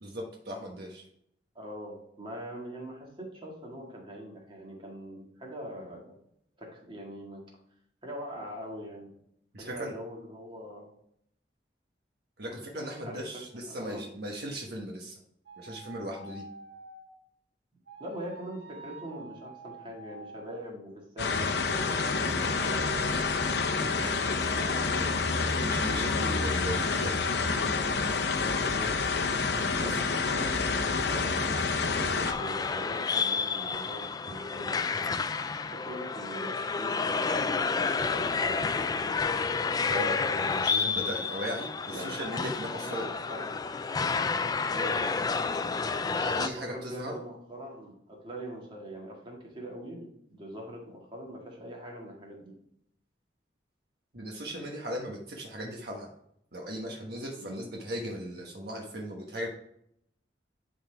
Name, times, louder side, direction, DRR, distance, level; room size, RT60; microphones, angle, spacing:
voice 1, 0.0-1.0 9.5-9.9 12.4-15.2 15.6-16.4 25.6-27.2 29.9-30.0 39.9-43.1 46.0-47.2 54.1-56.1 56.5-59.5, equal, 65° right, 0 dB, 1.2 m, -37 dB
voice 2, 1.5-6.2 6.6-7.4 8.0-9.1 9.6-10.9 13.1-14.0 18.0-23.3 23.8-25.2 28.5-28.9 29.8-31.4 31.9-34.9 35.7-39.2 40.4-40.9 41.9-43.5 44.7-45.2 46.7-52.5 57.4-57.6, right 1 dB, 30° right, -2 dB, 2.1 m, -42 dB
sound 1, 15.5-17.2 17.9-20.8 21.7-24.3, right 3 dB, 90° right, 2.1 m, -48 dB
sound 2, 21.2-32.3, left 4 dB, 65° left, 0.8 m, -28 dB
sound 3, 32.3-46.5, left 4 dB, 20° left, 0.3 m, -30 dB
11.0 x 4.0 x 3.5 m, 0.72 s
head